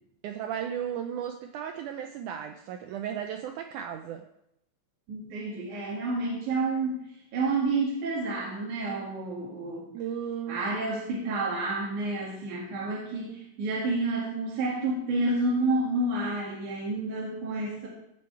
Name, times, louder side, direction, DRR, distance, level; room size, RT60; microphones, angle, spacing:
voice 1, 0.2-4.3 9.9-10.6, right 9 dB, 85° right, 6 dB, 1.8 m, -35 dB
voice 2, 5.1-7.0 7.3-9.9 10.5-17.9, right 2 dB, 60° right, -5 dB, 3.3 m, -29 dB
15.5 x 7.0 x 4.6 m, 0.81 s
omnidirectional pair, 4.2 m